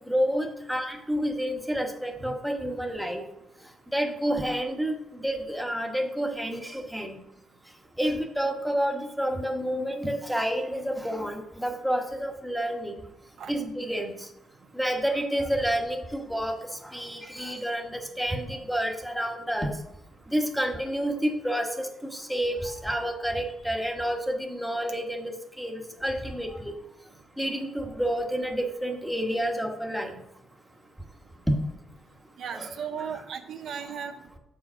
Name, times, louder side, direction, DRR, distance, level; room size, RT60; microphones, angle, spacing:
voice 1, 0.0-3.2 3.9-4.9 5.2-7.2 8.0-13.0 13.5-14.1 14.7-16.5 16.8-19.7 20.3-25.3 25.6-26.7 27.4-30.1 32.5-32.7, equal, ahead, 2 dB, 1.1 m, -29 dB
voice 2, 32.4-34.2, right 7 dB, 65° right, 7 dB, 0.6 m, -36 dB
7.3 x 4.9 x 5.5 m, 0.83 s
cardioid pair, 120°, 0 cm